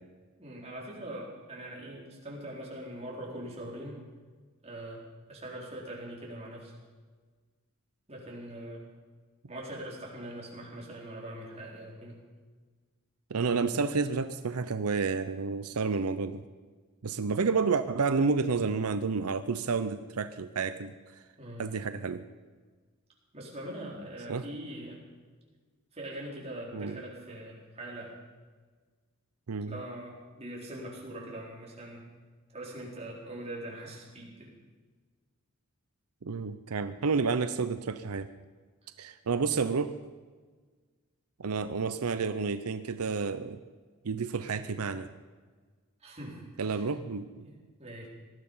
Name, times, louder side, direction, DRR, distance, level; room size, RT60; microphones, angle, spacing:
voice 1, 0.4-4.1 4.6-5.0 5.3-6.7 8.1-8.8 9.5-12.2 21.4-21.7 23.3-25.0 25.9-28.2 29.7-32.0 32.5-34.5 46.0-46.9 47.4-48.1, right 1 dB, 30° right, -3 dB, 4.2 m, -42 dB
voice 2, 13.3-16.4 17.0-21.2 21.6-22.3 24.3-24.4 26.7-27.0 29.5-29.7 36.2-38.3 39.0-40.0 41.4-43.6 44.0-45.1 46.6-47.5, right 4 dB, 90° right, 11 dB, 0.7 m, -30 dB
19.0 x 12.5 x 5.6 m, 1.4 s
head